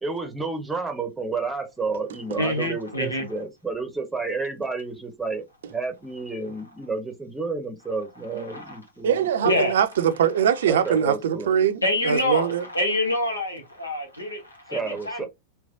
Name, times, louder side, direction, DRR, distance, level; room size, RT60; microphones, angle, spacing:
voice 1, 0.0-9.6 10.7-11.5 14.7-15.2, right 4 dB, 10° right, 0.8 m, -31 dB
voice 2, 2.4-3.2 8.3-8.8 9.4-9.8 10.5-10.9 11.8-15.2, left 1 dB, 80° left, 1.0 m, -27 dB
voice 3, 9.0-12.6, right 9 dB, 60° right, 0.5 m, -22 dB
3.3 x 2.9 x 2.6 m
figure-of-eight pair, 90°, 0 cm